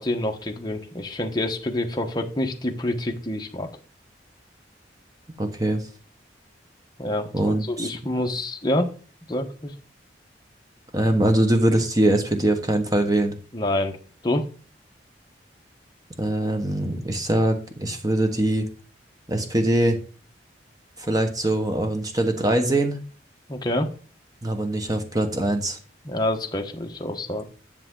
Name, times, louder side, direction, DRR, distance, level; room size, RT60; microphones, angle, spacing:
voice 1, 0.0-3.7 7.0-8.9 9.3-9.7 13.5-14.0 14.2-14.4 23.5-23.9 26.0-27.4, left 1 dB, 25° left, 3 dB, 1.1 m, -27 dB
voice 2, 5.4-5.8 7.3-7.9 10.9-13.4 16.2-18.7 19.3-20.0 21.0-23.0 24.4-25.8, right 1 dB, 20° right, 5 dB, 1.2 m, -22 dB
10.5 x 6.9 x 3.8 m, 0.40 s
head